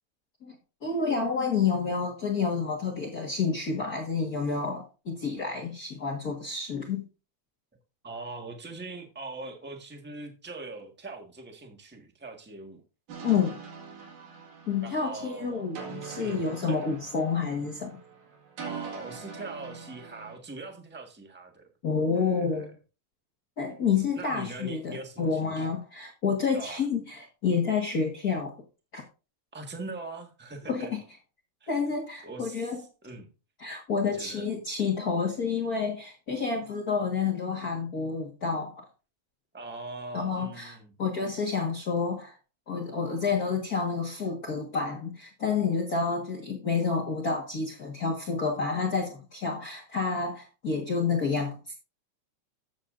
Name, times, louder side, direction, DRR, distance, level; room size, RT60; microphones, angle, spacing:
voice 1, 0.4-7.1 13.2-13.6 14.7-18.0 21.8-22.7 23.6-28.5 28.9-29.0 30.7-31.0 31.7-32.8 33.6-38.8 40.1-42.3 42.7-51.6, left 5 dB, 40° left, 1.5 m, -29 dB
voice 2, 8.0-12.8 14.8-15.7 16.2-17.0 18.6-21.7 22.1-22.6 24.1-25.7 26.5-26.9 29.5-30.9 31.6-31.7 32.2-32.8 33.0-33.3 34.0-34.5 39.5-40.9, right 3 dB, 10° right, 0.5 m, -42 dB
sound 1, 13.1-20.4, right 6 dB, 85° right, 3.3 m, -43 dB
13.5 x 8.5 x 2.5 m
omnidirectional pair, 3.3 m